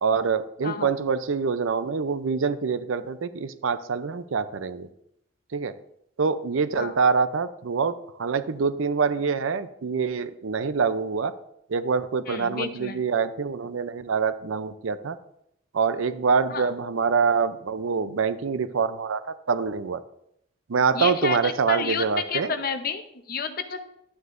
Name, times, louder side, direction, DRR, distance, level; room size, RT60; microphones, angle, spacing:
voice 1, 0.0-4.9 5.5-5.8 6.2-11.3 11.7-15.2 15.7-20.0 20.7-22.5, right 5 dB, 80° right, 13 dB, 0.5 m, -25 dB
voice 2, 12.3-13.0 16.5-16.7 20.9-23.8, left 5 dB, 45° left, 8 dB, 0.8 m, -30 dB
11.5 x 9.4 x 2.6 m, 0.77 s
head